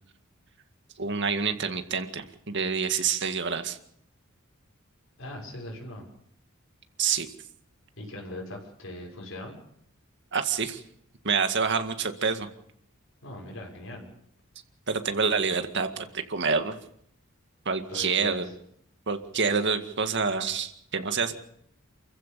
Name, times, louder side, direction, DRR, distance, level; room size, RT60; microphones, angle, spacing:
voice 1, 1.0-3.8 7.0-7.3 10.3-10.8 11.2-12.5 14.9-16.8 17.7-18.5 19.1-21.3, right 5 dB, 60° right, 8 dB, 2.0 m, -27 dB
voice 2, 5.2-6.1 8.0-9.5 13.2-14.1 17.9-18.5, left 1 dB, 65° left, 0 dB, 6.4 m, -40 dB
28.5 x 15.0 x 6.9 m, 0.72 s
head